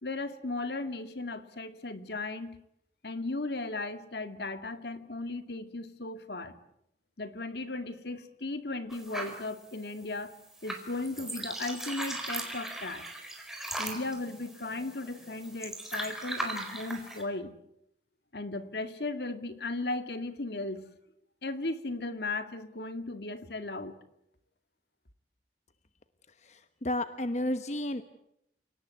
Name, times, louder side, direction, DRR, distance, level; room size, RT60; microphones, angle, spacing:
voice 1, 0.0-2.6 3.0-6.6 7.2-10.3 10.6-13.1 13.8-17.5 18.3-20.9 21.4-24.0, left 2 dB, 65° left, 10 dB, 2.1 m, -36 dB
sound 1, 8.9-17.2, right 1 dB, ahead, 4.3 m, -39 dB
voice 2, 26.4-28.1, left 1 dB, 40° left, 10 dB, 1.1 m, -32 dB
29.5 x 18.5 x 9.6 m, 0.79 s
head